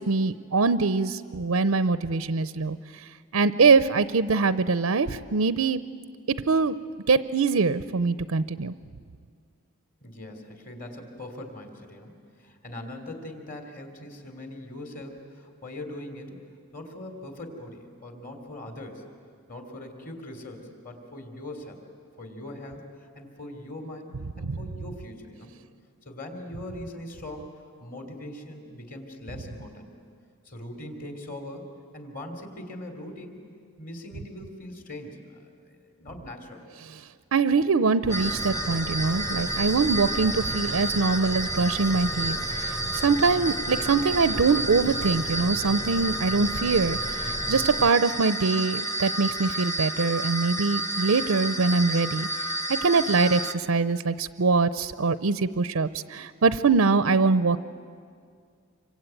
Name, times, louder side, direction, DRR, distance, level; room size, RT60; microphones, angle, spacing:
voice 1, 0.0-2.8 3.3-5.8 6.3-6.7 7.1-8.7 24.4-24.6 37.3-52.3 52.7-57.6, right 4 dB, 85° right, 14 dB, 0.6 m, -23 dB
voice 2, 10.0-16.4 16.7-19.0 19.5-21.8 22.2-24.1 24.4-25.5 26.0-27.5 27.8-29.9 30.4-31.7 31.9-33.4 33.8-36.6, left 1 dB, 40° left, 5 dB, 3.4 m, -41 dB
sound 1, 38.1-53.5, right 1 dB, 15° left, 1.0 m, -30 dB
sound 2, 38.1-47.9, right 1 dB, 20° right, 0.6 m, -38 dB
27.0 x 24.0 x 9.1 m, 2.2 s
head